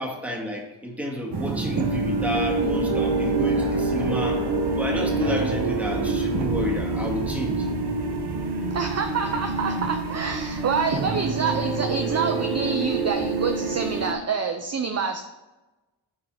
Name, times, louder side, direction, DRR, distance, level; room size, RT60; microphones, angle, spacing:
voice 1, 0.0-4.5 4.8-7.7, equal, 5° right, -2 dB, 1.9 m, -31 dB
sound 1, 1.3-14.1, right 4 dB, 50° right, 1.1 m, -26 dB
sound 2, 1.6-11.5, left 6 dB, 60° left, 0.8 m, -35 dB
voice 2, 8.7-15.2, right 5 dB, 35° right, 5 dB, 0.6 m, -27 dB
7.5 x 4.0 x 4.8 m, 1.1 s
cardioid pair, 85°, 49 cm